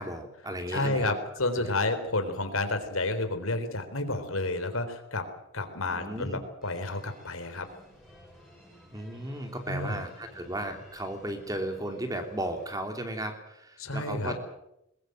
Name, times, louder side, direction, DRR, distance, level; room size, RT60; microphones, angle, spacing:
voice 1, 0.0-1.1 1.6-1.7 2.4-2.6 5.9-6.4 8.9-14.4, right 1 dB, 15° right, 5 dB, 3.0 m, -35 dB
voice 2, 0.7-5.3 5.5-7.7 9.7-10.0 13.8-14.3, left 2 dB, 85° left, 8 dB, 3.9 m, -30 dB
sound 1, 6.6-12.7, equal, ahead, 6.4 m, -54 dB
22.0 x 21.0 x 7.8 m, 0.83 s
head